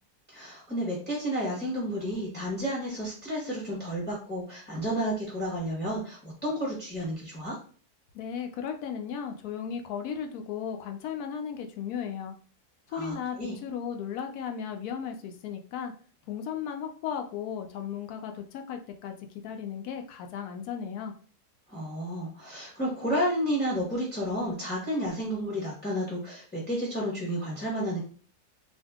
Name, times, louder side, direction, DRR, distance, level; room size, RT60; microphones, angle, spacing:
voice 1, 0.3-7.6 12.9-13.5 21.7-28.0, equal, 10° left, -5 dB, 0.8 m, -31 dB
voice 2, 8.1-12.4 12.9-15.9 16.3-19.1 19.4-21.1, left 7 dB, 75° left, 5 dB, 1.1 m, -35 dB
2.7 x 2.5 x 3.5 m, 0.42 s
omnidirectional pair, 1.6 m